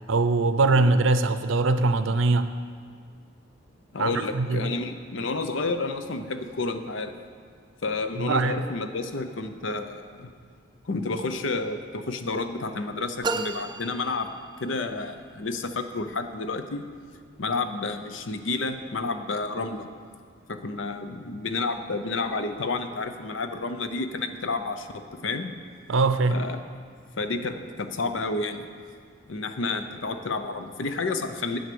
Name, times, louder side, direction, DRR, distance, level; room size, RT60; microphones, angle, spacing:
voice 1, 0.1-2.5 4.0-4.7 8.2-8.5 25.9-26.4, right 3 dB, 80° right, 11 dB, 0.6 m, -22 dB
voice 2, 3.9-7.2 7.8-10.3 10.8-14.3 14.6-16.8 17.4-19.9 20.5-25.5 26.3-26.6 27.2-28.7 29.3-31.6, left 3 dB, 75° left, 8 dB, 0.7 m, -30 dB
sound 1, 13.2-14.9, right 3 dB, 20° right, 0.4 m, -33 dB
9.5 x 7.8 x 6.9 m, 2.1 s
head